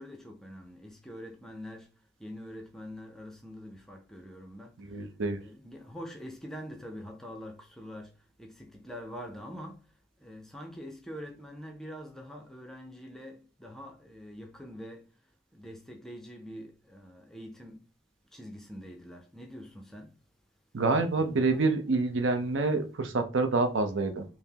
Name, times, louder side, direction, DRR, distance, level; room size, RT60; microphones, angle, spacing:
voice 1, 0.0-1.9 2.2-4.8 5.4-9.8 10.2-15.1 15.5-17.9 18.3-20.1 21.2-21.5, equal, ahead, 0.4 m, -44 dB
voice 2, 4.8-5.4 20.7-24.3, right 3 dB, 75° right, 0.6 m, -27 dB
5.5 x 2.0 x 2.8 m
head